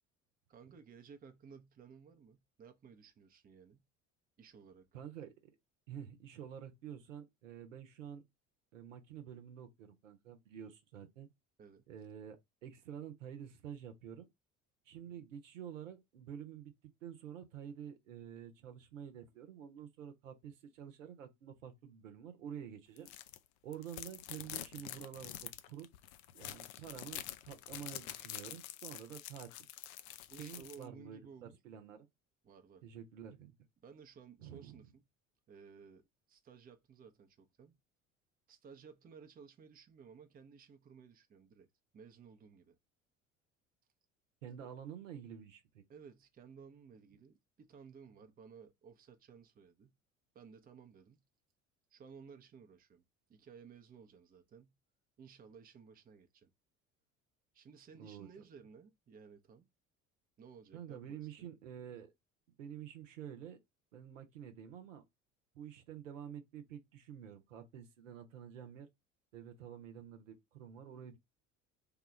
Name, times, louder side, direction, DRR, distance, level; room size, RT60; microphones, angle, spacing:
voice 1, 0.5-3.9 4.4-4.9 11.6-11.9 15.1-15.3 30.3-31.6 32.4-32.8 33.8-35.0 35.5-37.8 38.5-41.7 41.9-42.8 45.9-50.0 50.3-51.3 51.9-53.0 53.3-54.8 55.2-56.5 57.5-59.7 60.4-61.5, right 6 dB, 25° right, 0.6 m, -57 dB
voice 2, 4.9-5.3 5.9-8.2 8.7-11.3 11.9-14.3 14.9-16.7 17.0-23.1 23.6-25.9 26.3-29.7 30.4-32.1 32.8-33.5 34.4-34.9 44.4-45.8 58.0-58.3 60.7-62.1 62.6-63.6 63.9-65.0 65.5-68.9 69.3-71.2, right 9 dB, 75° right, 0.9 m, -49 dB
sound 1, 23.0-23.4 23.7-30.8, left 13 dB, 60° left, 0.5 m, -47 dB
3.6 x 2.4 x 3.0 m
figure-of-eight pair, 60°, 39 cm